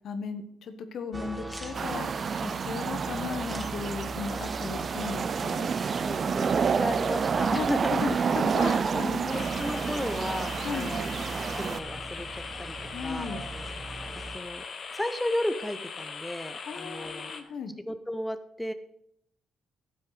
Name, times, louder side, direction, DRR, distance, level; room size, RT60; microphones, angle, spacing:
voice 1, 0.0-5.7 7.5-9.3 10.6-10.9 12.9-13.5 16.7-17.7, left 5 dB, 65° left, 8 dB, 1.3 m, -36 dB
sound 1, 1.1-14.4, right 2 dB, 15° right, 1.5 m, -40 dB
sound 2, 1.7-11.8, right 6 dB, 45° right, 0.4 m, -29 dB
voice 2, 5.7-12.8 13.0-13.3 14.3-14.6 14.9-17.3 17.9-18.7, left 1 dB, 5° left, 10 dB, 0.7 m, -34 dB
sound 3, 9.3-17.4, left 5 dB, 50° left, 1.3 m, -40 dB
13.0 x 7.5 x 5.0 m, 0.72 s
cardioid pair, 90°, 0 cm